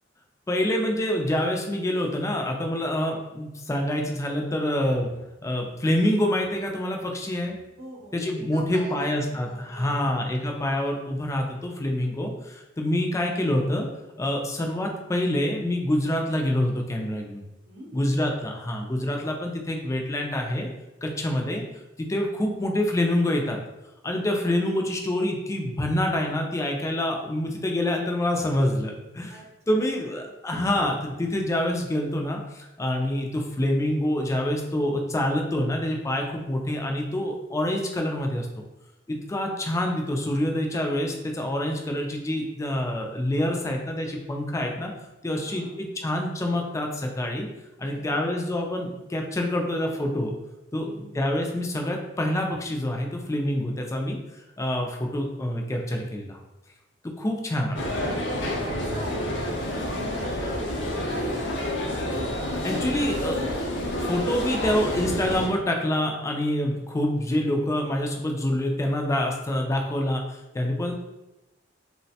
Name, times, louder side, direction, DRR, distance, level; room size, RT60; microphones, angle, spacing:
voice 1, 0.5-5.1 5.4-7.6 8.1-13.9 14.2-17.4 17.9-20.7 21.0-21.6 22.0-23.6 24.0-29.4 29.7-38.5 39.1-44.9 45.2-47.5 47.8-50.3 50.7-50.9 51.1-54.2 54.6-56.4 57.2-58.2 62.6-63.4 64.0-71.0, left 1 dB, 15° left, 2 dB, 0.3 m, -26 dB
voice 2, 7.8-10.3 17.7-18.1 29.3-30.3 45.3-45.7 47.8-48.3 50.7-51.1 58.7-62.0, right 1 dB, 55° right, -2 dB, 0.7 m, -43 dB
sound 1, 57.8-65.5, left 1 dB, 70° left, 0.5 m, -29 dB
3.1 x 2.1 x 2.7 m, 0.98 s
head